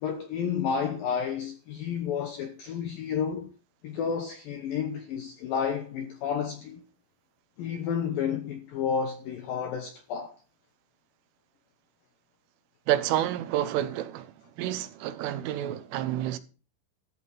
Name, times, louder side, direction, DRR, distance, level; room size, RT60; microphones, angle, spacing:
voice 1, 0.0-3.5 3.8-6.8 7.6-10.3, left 7 dB, 80° left, 2.0 m, -31 dB
voice 2, 12.9-16.4, right 12 dB, 85° right, 3.5 m, -29 dB
14.0 x 7.5 x 5.7 m
omnidirectional pair, 5.6 m